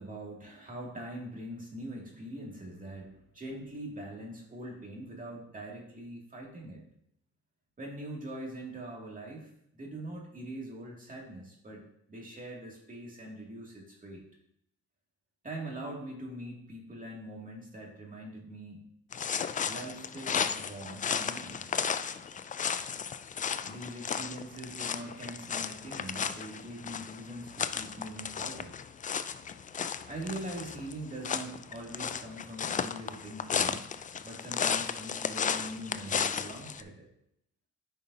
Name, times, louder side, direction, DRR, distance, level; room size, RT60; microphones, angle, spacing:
voice 1, 0.0-6.8 7.8-11.8 12.1-14.2 15.4-18.8 19.6-21.6 23.7-28.7 30.1-33.9 34.2-37.1, right 1 dB, 25° right, -2 dB, 2.4 m, -42 dB
sound 1, 19.1-36.8, left 7 dB, 25° left, 0.3 m, -34 dB
9.4 x 5.3 x 2.7 m, 0.74 s
cardioid pair, 90°, 30 cm